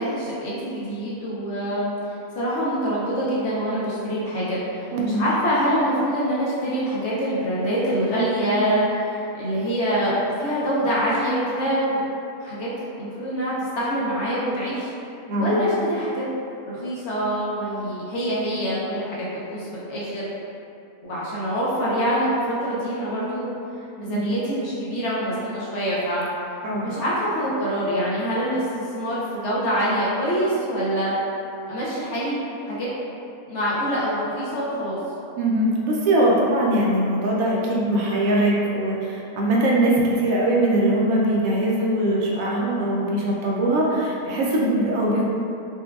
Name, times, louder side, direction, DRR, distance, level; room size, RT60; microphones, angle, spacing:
voice 1, 0.0-1.9 2.4-12.1 12.4-12.7 13.0-14.9 15.4-16.3 16.7-20.3 21.0-23.5 24.0-26.2 26.8-31.1 31.7-32.4 32.7-32.9 33.5-35.0, equal, 60° left, -8 dB, 0.8 m, -25 dB
voice 2, 4.9-5.2 15.3-15.5 24.1-24.3 26.6-26.9 35.4-45.3, right 1 dB, 75° right, -4 dB, 1.0 m, -21 dB
4.3 x 2.2 x 2.3 m, 2.7 s
omnidirectional pair, 1.5 m